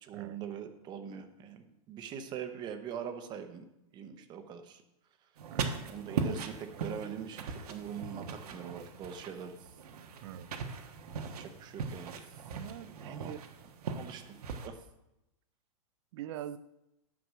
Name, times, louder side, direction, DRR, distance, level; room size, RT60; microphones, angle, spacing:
voice 1, 0.0-3.6 3.9-4.8 5.9-9.6 11.2-12.2 12.8-13.4 13.8-14.2 14.6-14.8, right 8 dB, 25° right, 9 dB, 0.8 m, -43 dB
sound 1, 5.4-14.7, right 5 dB, 85° right, 1.3 m, -39 dB
voice 2, 10.2-10.5 12.5-13.4 16.1-16.6, right 12 dB, 50° right, 16 dB, 0.5 m, -43 dB
9.4 x 6.1 x 6.2 m, 0.90 s
supercardioid pair, 160°, 19 cm